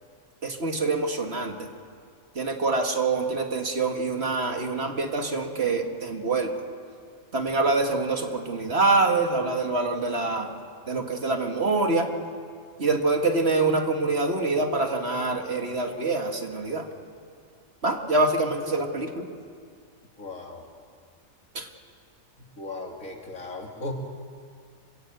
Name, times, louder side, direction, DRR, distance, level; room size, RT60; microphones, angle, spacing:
voice 1, 0.4-1.7 2.4-6.5 7.3-10.5 10.9-12.1 12.8-16.9 17.8-19.3 21.5-21.7, right 3 dB, 50° right, 4 dB, 2.0 m, -25 dB
voice 2, 20.2-20.6 22.6-23.9, left 2 dB, 75° left, 1 dB, 3.0 m, -36 dB
27.5 x 16.5 x 7.9 m, 2.1 s
omnidirectional pair, 1.4 m